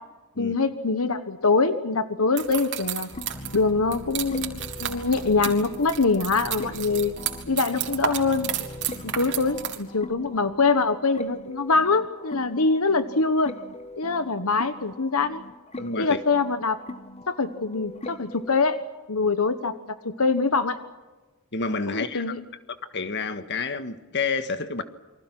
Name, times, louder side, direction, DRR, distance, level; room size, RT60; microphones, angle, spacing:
voice 1, 0.4-3.1 3.5-7.1 7.5-8.5 9.0-13.5 14.0-15.4 16.0-16.8 17.3-18.8 19.1-20.8 21.9-22.4, left 4 dB, 75° left, 1.3 m, -24 dB
sound 1, 2.4-9.8, right 9 dB, 55° right, 3.3 m, -32 dB
sound 2, 3.1-18.6, left 1 dB, 30° left, 1.2 m, -40 dB
voice 2, 15.8-16.2 21.5-22.3 22.9-24.8, left 4 dB, 50° left, 1.6 m, -29 dB
29.0 x 24.5 x 6.1 m
head